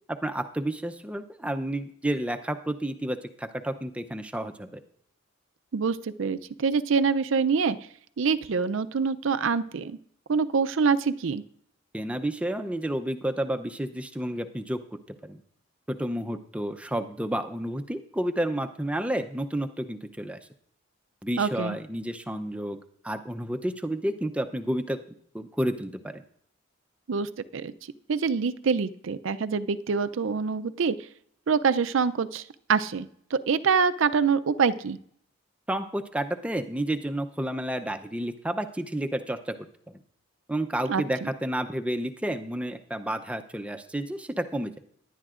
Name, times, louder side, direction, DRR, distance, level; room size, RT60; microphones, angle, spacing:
voice 1, 0.1-4.8 11.9-15.4 15.9-20.4 21.2-22.8 23.0-25.0 25.3-26.2 35.7-39.5 39.9-40.0 40.5-44.8, right 1 dB, 5° right, 6 dB, 0.6 m, -31 dB
voice 2, 5.7-7.8 8.2-10.0 10.3-11.4 21.4-21.8 27.1-27.7 28.1-31.1 31.5-35.0 40.9-41.0, right 5 dB, 65° right, 13 dB, 0.5 m, -25 dB
18.0 x 11.0 x 2.5 m, 0.64 s
head